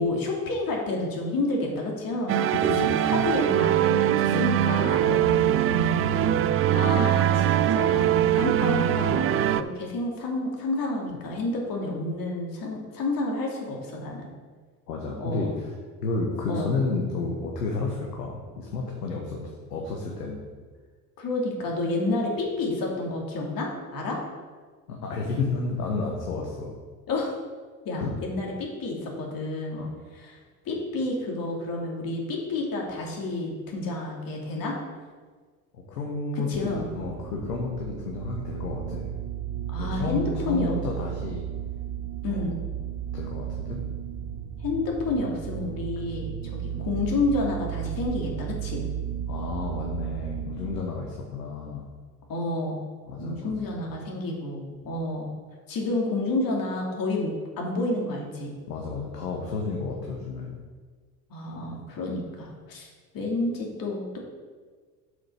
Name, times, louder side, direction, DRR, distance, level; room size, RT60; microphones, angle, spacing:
voice 1, 0.0-5.1 6.7-14.3 15.2-15.5 16.5-16.7 21.2-24.2 27.1-27.3 27.8-29.8 30.1-30.4 30.6-34.8 36.3-36.9 39.7-40.8 42.2-42.6 44.6-48.8 52.3-52.8 53.2-55.3 55.7-58.5 61.3-62.9 63.1-64.2, left 2 dB, 45° left, -1 dB, 2.8 m, -30 dB
sound 1, 2.3-9.6, right 11 dB, 30° right, 0.4 m, -22 dB
voice 2, 2.6-3.3 5.0-5.9 8.1-8.2 14.9-15.7 16.0-19.4 19.7-20.4 24.9-26.7 28.0-28.1 29.7-30.0 35.7-39.1 39.8-41.5 42.3-42.5 43.1-43.8 46.7-46.8 49.3-51.9 53.1-53.5 58.7-60.6, left 3 dB, 80° left, 0 dB, 1.4 m, -31 dB
sound 2, 36.5-50.8, right 10 dB, 50° right, 1.0 m, -34 dB
7.8 x 6.3 x 5.4 m, 1.5 s
hypercardioid pair, 70°, 47 cm